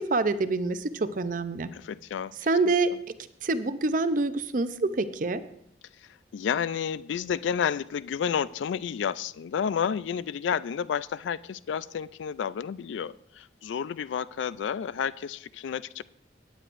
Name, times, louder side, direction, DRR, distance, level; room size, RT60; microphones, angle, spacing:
voice 1, 0.0-1.7 2.5-2.9 3.4-5.4, right 3 dB, 45° right, 12 dB, 0.5 m, -26 dB
voice 2, 1.7-2.3 2.6-2.7 6.0-16.0, left 7 dB, 85° left, 18 dB, 0.3 m, -31 dB
16.5 x 9.3 x 2.5 m, 0.73 s
head